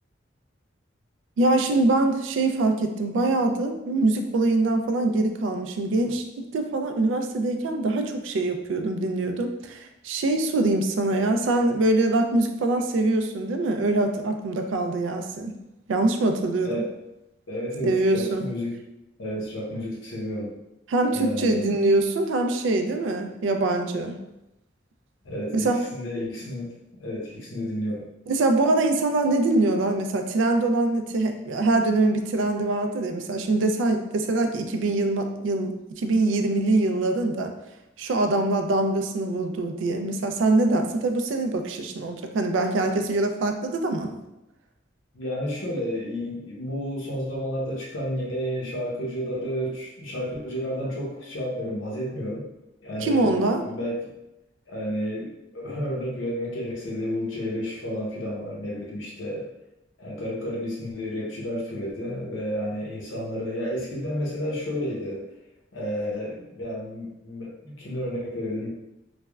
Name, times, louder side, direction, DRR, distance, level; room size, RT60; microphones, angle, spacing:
voice 1, 1.4-6.2 6.5-15.5 15.9-16.8 17.8-18.4 20.9-24.2 25.5-25.8 28.3-37.5 38.0-44.2 53.0-53.6, right 2 dB, 85° right, 6 dB, 0.3 m, -23 dB
voice 2, 16.6-17.0 17.5-18.8 19.2-20.5 21.1-21.7 25.2-28.1 45.1-52.5 52.8-54.1 54.7-59.5 60.0-65.3 65.7-68.7, equal, 90° left, -3 dB, 0.8 m, -31 dB
3.3 x 2.1 x 2.2 m, 0.92 s
head